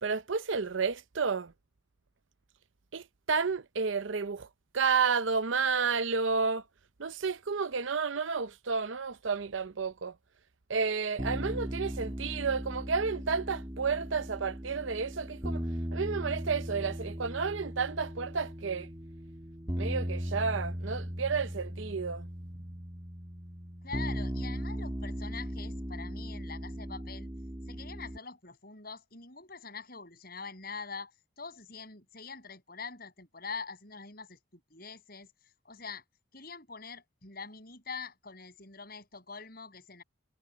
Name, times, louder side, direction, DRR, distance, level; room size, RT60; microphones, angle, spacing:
voice 1, 0.0-1.5 2.9-4.5 4.7-6.6 7.0-10.1 10.7-15.6 15.9-18.9 19.8-22.3, right 5 dB, 80° right, 0.7 m, -31 dB
sound 1, 11.2-28.2, equal, 20° right, 2.6 m, -38 dB
voice 2, 23.8-27.3 27.7-31.1 31.4-35.3 35.7-36.0 36.3-40.0, left 5 dB, 50° left, 6.9 m, -44 dB
head